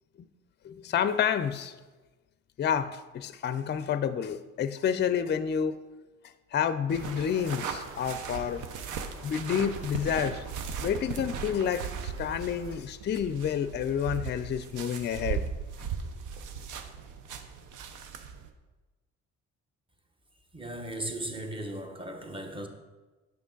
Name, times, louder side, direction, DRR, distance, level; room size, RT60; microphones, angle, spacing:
voice 1, 0.6-1.8 2.6-5.8 6.5-8.6 9.2-10.4 10.8-15.4, left 8 dB, 35° left, 0.4 m, -29 dB
sound 1, 6.9-18.5, right 6 dB, 85° right, 0.7 m, -38 dB
sound 2, 7.0-12.8, right 3 dB, 45° right, 1.0 m, -48 dB
voice 2, 20.5-22.7, right 1 dB, 15° right, 0.9 m, -37 dB
6.1 x 5.8 x 3.9 m
cardioid pair, 90°, 30 cm